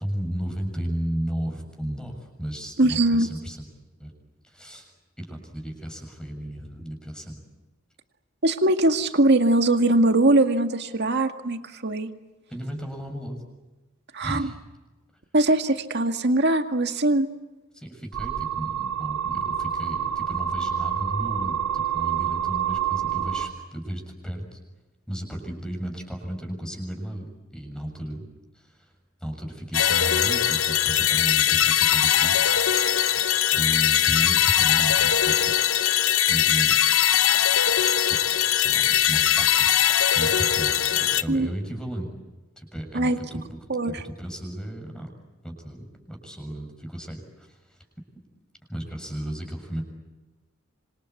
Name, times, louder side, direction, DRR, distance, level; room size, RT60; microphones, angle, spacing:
voice 1, 0.0-3.7 4.0-4.1 4.4-4.9 5.2-7.4 12.5-13.4 14.2-14.6 17.7-24.6 25.1-28.3 28.5-28.9 29.2-33.2 33.5-35.5 36.3-36.7 38.1-38.2 38.5-39.7 40.1-42.1 42.5-45.1 45.4-47.8 48.7-49.8, equal, 5° left, 4 dB, 6.9 m, -34 dB
voice 2, 2.8-3.3 8.4-12.1 14.1-14.5 15.3-17.3 41.3-41.5 42.9-43.2 43.7-43.9, right 2 dB, 55° right, 7 dB, 2.0 m, -21 dB
sound 1, 18.1-23.5, right 9 dB, 90° right, 2.3 m, -27 dB
sound 2, 29.7-41.2, left 10 dB, 70° left, 1.0 m, -21 dB
26.5 x 26.5 x 8.3 m, 1.1 s
head